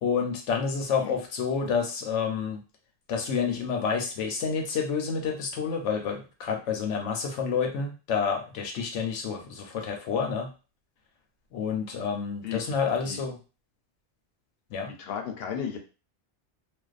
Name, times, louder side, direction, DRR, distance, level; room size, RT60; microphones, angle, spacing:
voice 1, 0.0-2.6 3.1-10.5 11.5-13.4 14.7-14.9, left 6 dB, 90° left, 3 dB, 1.0 m, -29 dB
voice 2, 12.4-12.8 13.0-13.2 15.0-15.8, left 7 dB, 65° left, 3 dB, 0.7 m, -34 dB
2.5 x 2.2 x 2.4 m, 0.33 s
omnidirectional pair, 1.2 m